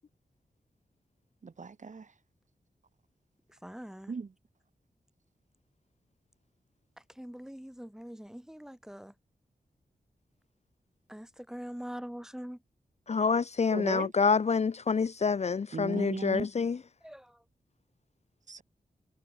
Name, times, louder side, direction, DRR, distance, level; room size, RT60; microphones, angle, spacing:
voice 1, 1.6-2.0 4.1-4.3 13.7-14.1 15.7-16.5 18.5-18.6, right 5 dB, 55° right, 2.5 m, -36 dB
voice 2, 3.6-4.1 7.2-9.1 11.1-12.6 17.0-17.3, equal, 5° right, 5.8 m, -43 dB
voice 3, 13.1-16.8, left 5 dB, 45° left, 0.7 m, -27 dB
wide cardioid pair, 100°, 15 cm